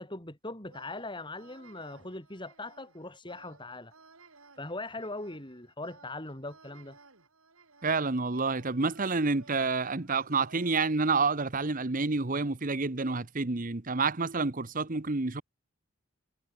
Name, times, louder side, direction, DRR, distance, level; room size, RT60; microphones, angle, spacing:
voice 1, 0.0-3.9 4.6-7.0, left 2 dB, 20° left, 4.1 m, -40 dB
sound 1, 0.7-10.9, right 4 dB, 80° right, 6.1 m, -58 dB
voice 2, 7.8-15.4, right 4 dB, 40° right, 1.1 m, -29 dB
head